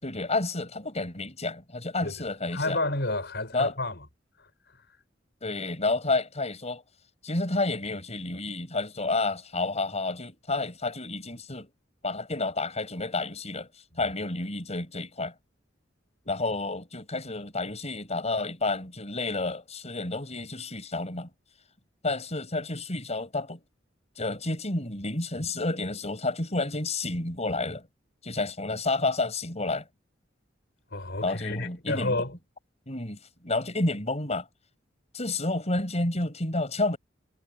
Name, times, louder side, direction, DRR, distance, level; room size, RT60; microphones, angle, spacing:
voice 1, 0.0-2.8 3.5-3.7 5.4-6.8 7.2-11.7 12.0-13.7 14.0-15.3 16.3-21.3 22.0-23.6 24.2-27.9 28.2-29.9 31.2-32.2 32.9-34.5 35.1-37.0, left 2 dB, 35° left, 5.6 m, -30 dB
voice 2, 2.5-4.0 30.9-32.3, left 2 dB, 60° left, 5.2 m, -30 dB
head